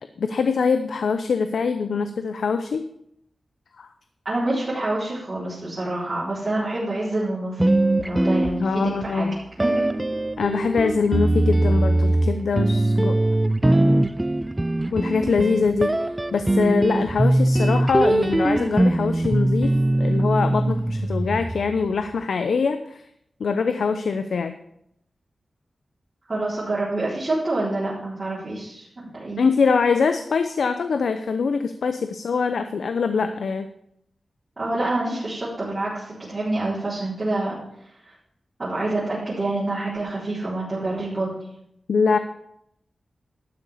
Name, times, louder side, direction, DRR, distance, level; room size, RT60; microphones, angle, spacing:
voice 1, 0.2-2.9 3.8-3.9 8.6-9.5 10.4-13.2 14.9-19.7 20.0-23.0 23.4-24.5 29.4-33.7 41.9-42.2, left 5 dB, 90° left, 9 dB, 0.7 m, -23 dB
voice 2, 4.2-7.6 8.0-9.3 9.6-9.8 26.3-28.9 29.2-29.4 34.6-37.6 38.6-41.3, right 2 dB, 35° right, -8 dB, 4.1 m, -27 dB
sound 1, 7.6-9.1 9.6-21.8, right 1 dB, 15° right, 0.4 m, -21 dB
12.0 x 6.8 x 7.1 m, 0.74 s
wide cardioid pair, 120°, 0 cm